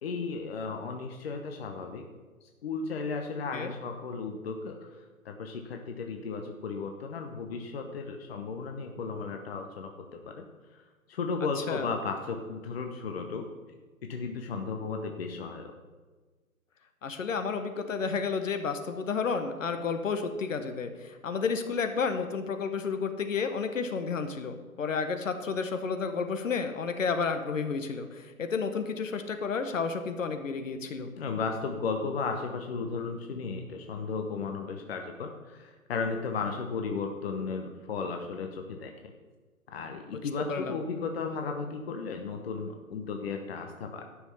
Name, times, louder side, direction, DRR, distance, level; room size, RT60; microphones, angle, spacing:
voice 1, 0.0-2.0 2.6-4.9 5.2-10.4 11.1-13.5 14.0-15.7 31.2-38.9 39.7-44.0, left 4 dB, 45° left, 4 dB, 1.0 m, -35 dB
voice 2, 11.6-11.9 17.0-31.1 40.5-40.8, left 5 dB, 60° left, 7 dB, 1.2 m, -31 dB
12.5 x 6.2 x 5.5 m, 1.3 s
hypercardioid pair, 150°, 44 cm